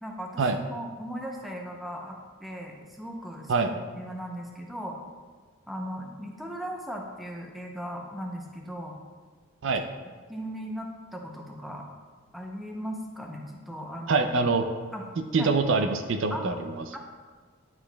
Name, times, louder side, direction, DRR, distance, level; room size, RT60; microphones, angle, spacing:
voice 1, 0.0-5.0 5.7-9.0 10.3-11.8 12.3-14.4 14.9-15.1 15.4-15.5 16.3-16.5 16.9-17.0, equal, ahead, 0 dB, 0.6 m, -38 dB
voice 2, 14.1-14.6 15.3-16.8, right 4 dB, 60° right, 6 dB, 0.4 m, -24 dB
10.5 x 4.8 x 2.2 m, 1.5 s
head